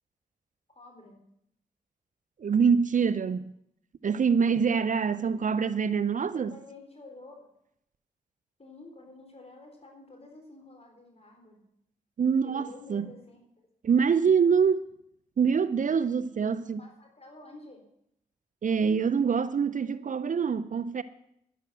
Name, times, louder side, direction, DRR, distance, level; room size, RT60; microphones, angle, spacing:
voice 1, 0.7-1.2 6.3-7.5 8.6-11.6 12.4-13.4 16.4-16.5 16.8-17.9, left 2 dB, 40° left, 3.8 m, -50 dB
voice 2, 2.4-3.5 4.0-6.5 12.2-13.1 13.8-14.9 15.4-16.8 18.6-21.0, right 6 dB, 55° right, 0.6 m, -25 dB
11.0 x 10.5 x 6.3 m
supercardioid pair, 45°, 16 cm